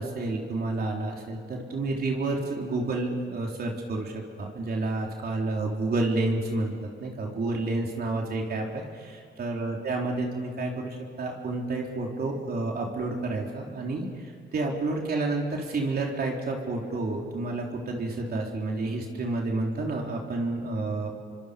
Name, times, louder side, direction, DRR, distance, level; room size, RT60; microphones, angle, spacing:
voice 1, 0.0-4.1 4.4-6.7 7.0-21.1, right 2 dB, 50° right, 0 dB, 4.0 m, -30 dB
27.5 x 25.0 x 5.3 m, 2.3 s
cardioid pair, 90°, 20 cm